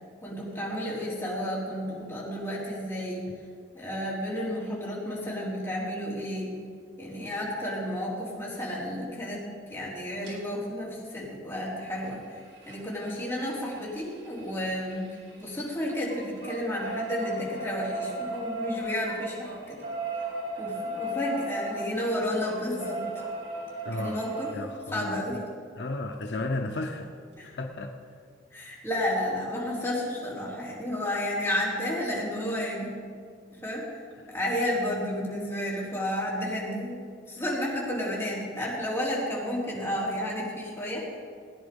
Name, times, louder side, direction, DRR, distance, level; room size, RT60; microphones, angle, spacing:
voice 1, 0.2-3.3 3.7-6.5 7.0-9.4 9.7-15.1 15.4-19.8 20.6-23.2 23.9-24.5 24.9-25.4 27.4-27.5 28.5-32.9 33.5-33.8 34.3-37.0 37.3-41.2, left 1 dB, 15° left, -6 dB, 3.9 m, -32 dB
sound 1, 10.2-10.3 12.0-15.5 15.8-24.5 26.2-26.3 26.6-26.7 27.0-27.1, right 1 dB, 70° right, 4.5 m, -36 dB
voice 2, 23.8-24.2 24.5-25.4 25.8-27.1 27.4-27.9 34.2-34.3, left 2 dB, 70° left, 4 dB, 0.9 m, -33 dB
18.0 x 9.9 x 5.4 m, 2.1 s
head